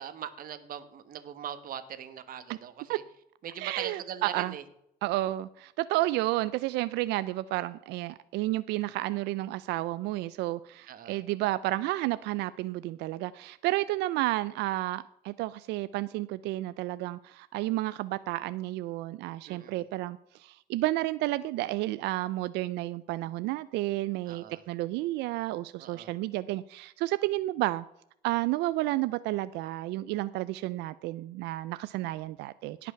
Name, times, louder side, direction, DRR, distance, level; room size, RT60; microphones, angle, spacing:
voice 1, 0.0-3.0 3.4-4.6 10.9-11.2 19.4-19.8 24.3-24.6 25.8-26.1, right 9 dB, 55° right, 12 dB, 1.3 m, -41 dB
voice 2, 3.6-4.5 5.0-27.8 28.2-32.9, right 17 dB, 90° right, 16 dB, 0.4 m, -31 dB
17.5 x 6.0 x 5.7 m, 0.77 s
cardioid pair, 110°, 17 cm